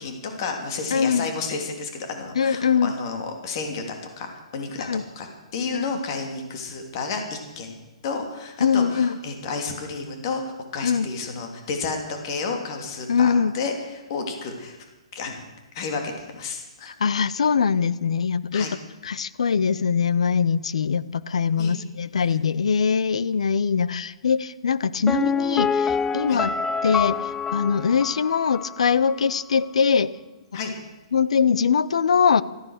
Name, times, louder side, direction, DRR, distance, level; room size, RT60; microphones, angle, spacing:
voice 1, 0.0-7.8 8.0-14.8 15.1-15.5 15.7-16.9 18.5-18.7 21.6-21.8 26.3-26.4 30.5-30.7, left 4 dB, 45° left, 4 dB, 3.0 m, -31 dB
voice 2, 0.9-1.3 2.4-2.9 4.8-5.0 5.7-5.8 8.6-9.1 10.8-11.1 13.1-13.5 17.0-18.7 19.0-26.5 26.8-27.2 27.5-30.2 31.1-32.4, left 6 dB, 80° left, 17 dB, 0.7 m, -22 dB
Piano, 25.1-28.8 29.1-29.2, left 5 dB, 10° left, 0.4 m, -26 dB
14.0 x 14.0 x 6.6 m, 1.1 s
hypercardioid pair, 150°, 3 cm